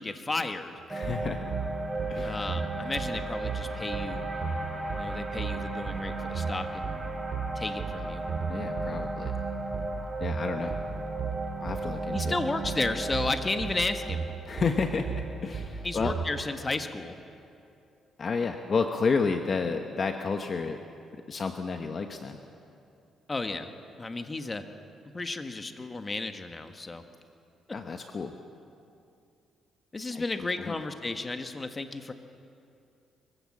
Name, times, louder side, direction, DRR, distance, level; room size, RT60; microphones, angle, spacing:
voice 1, 0.0-0.7 2.2-4.2 5.0-7.0 7.5-8.2 12.1-14.2 15.8-17.2 23.3-23.7 24.0-24.6 25.1-27.0 29.9-32.1, left 3 dB, 25° left, 7 dB, 1.5 m, -33 dB
voice 2, 0.9-1.4 2.1-2.4 8.5-9.3 10.2-10.8 11.5-12.4 14.4-16.2 18.2-20.8 21.3-22.4 27.7-28.3 30.1-30.8, left 4 dB, 45° left, 5 dB, 1.1 m, -31 dB
sound 1, 0.9-17.2, right 2 dB, 25° right, 3.4 m, -36 dB
sound 2, 1.0-16.3, right 6 dB, 55° right, 2.3 m, -35 dB
24.0 x 15.5 x 7.4 m, 2.6 s
cardioid pair, 90°, 0 cm